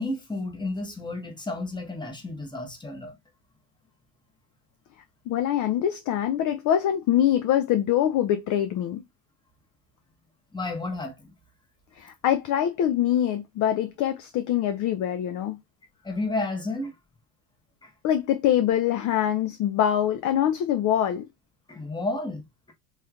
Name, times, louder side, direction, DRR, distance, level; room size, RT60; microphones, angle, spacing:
voice 1, 0.0-3.2 10.5-11.1 16.0-16.9 17.8-17.9 21.7-22.7, left 2 dB, 10° left, 1.0 m, -31 dB
voice 2, 5.3-9.0 12.0-15.6 18.0-21.3, left 10 dB, 40° left, 0.4 m, -24 dB
3.2 x 2.9 x 2.3 m
supercardioid pair, 90°, 48 cm